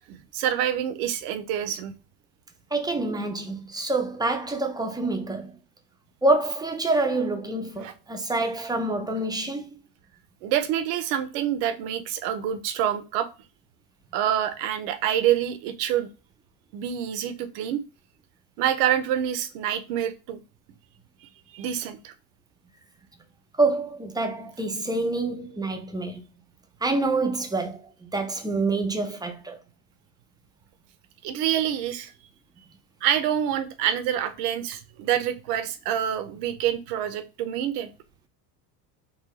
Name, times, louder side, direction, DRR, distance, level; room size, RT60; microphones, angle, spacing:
voice 1, 0.1-1.9 7.8-7.9 10.4-13.3 14.1-16.1 16.7-17.8 18.6-20.4 21.5-22.1 31.2-32.1 33.0-37.9, right 10 dB, 70° right, 0.7 m, -27 dB
voice 2, 2.7-5.6 6.2-9.6 23.6-26.2 26.8-29.6, right 2 dB, 10° right, 0.5 m, -26 dB
3.8 x 2.2 x 3.1 m
supercardioid pair, 90°, 48 cm